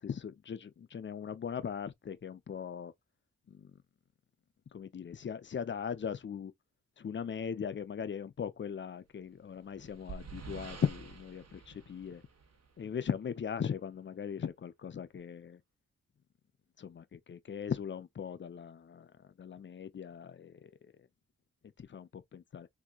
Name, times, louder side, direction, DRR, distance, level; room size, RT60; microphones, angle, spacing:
voice 1, 0.0-2.9 3.5-3.7 4.7-6.5 7.0-12.2 12.8-15.6 16.8-19.1 19.4-20.7 21.8-22.7, left 7 dB, 40° left, 0.5 m, -39 dB
sound 1, 9.3-12.9, right 4 dB, 55° right, 1.1 m, -48 dB
3.6 x 2.6 x 2.3 m
cardioid pair, 60°, 30 cm